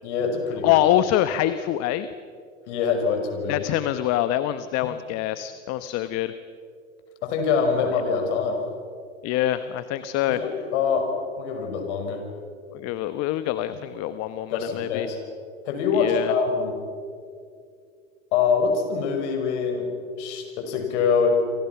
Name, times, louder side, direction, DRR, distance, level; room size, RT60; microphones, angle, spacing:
voice 1, 0.0-0.8 2.7-3.7 4.8-4.9 7.2-8.6 10.3-12.2 14.5-15.2 15.7-16.8 18.3-21.4, left 5 dB, 60° left, 5 dB, 5.9 m, -24 dB
voice 2, 0.6-2.1 3.5-6.3 9.2-10.4 12.7-15.1 15.9-16.3, left 13 dB, 40° left, 12 dB, 1.1 m, -25 dB
28.5 x 27.0 x 5.9 m, 2.3 s
hypercardioid pair, 105°, 40 cm